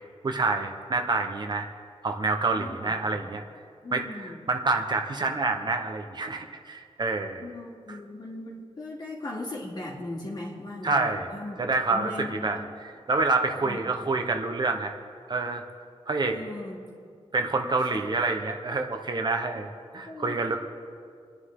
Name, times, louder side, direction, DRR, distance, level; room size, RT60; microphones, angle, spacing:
voice 1, 0.2-1.7 2.0-3.4 3.9-7.4 10.8-11.3 11.6-12.6 13.1-14.9 15.3-15.6 16.1-16.3 17.3-19.7 19.9-20.6, right 3 dB, 40° right, 4 dB, 1.0 m, -27 dB
voice 2, 2.5-3.1 3.8-4.4 7.4-11.6 11.9-12.6 13.6-13.8 16.2-16.8 17.8-17.9 20.1-20.4, left 2 dB, 40° left, -2 dB, 2.7 m, -38 dB
27.5 x 10.0 x 3.7 m, 2.2 s
wide cardioid pair, 150°, 11 cm